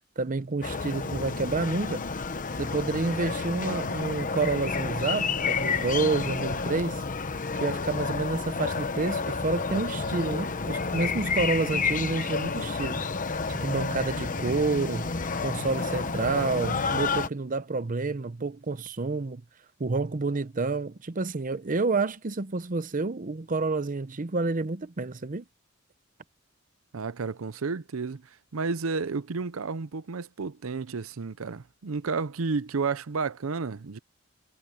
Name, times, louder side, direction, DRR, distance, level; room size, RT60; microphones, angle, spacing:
voice 1, 0.2-2.1 2.6-7.0 7.6-13.0 13.5-19.4 19.8-25.4, right 3 dB, 40° right, 0.7 m, -29 dB
sound 1, 0.6-17.3, left 4 dB, 40° left, 1.0 m, -30 dB
voice 2, 26.9-34.0, right 4 dB, 80° right, 0.6 m, -31 dB
head